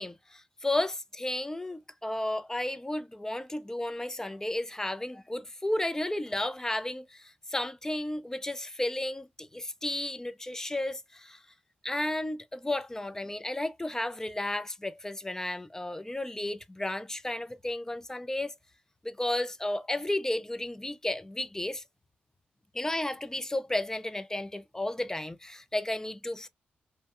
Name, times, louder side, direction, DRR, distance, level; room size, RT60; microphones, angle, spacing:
voice 1, 0.0-11.4 11.8-18.6 19.0-21.8 22.7-26.5, left 1 dB, 15° left, 0.4 m, -33 dB
2.6 x 2.2 x 2.4 m
supercardioid pair, 55°, 4 cm